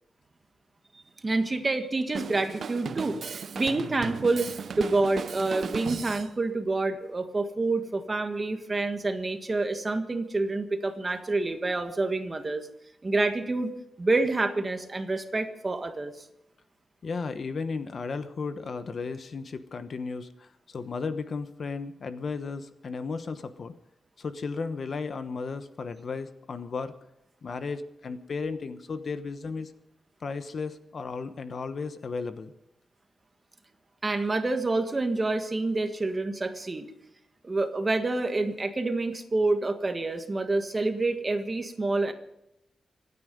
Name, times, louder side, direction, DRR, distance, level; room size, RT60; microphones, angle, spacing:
voice 1, 1.2-4.5 4.8-12.7 13.0-13.7 14.0-16.2 34.0-36.9 37.4-42.1, right 2 dB, 25° right, 7 dB, 1.7 m, -28 dB
Drum kit, 2.1-6.3, right 6 dB, 60° right, 0.5 m, -36 dB
voice 2, 17.0-23.7 24.2-26.9 27.4-29.7 30.2-32.5, left 4 dB, 50° left, 10 dB, 1.1 m, -34 dB
26.0 x 9.8 x 5.3 m, 0.84 s
wide cardioid pair, 140°, 0 cm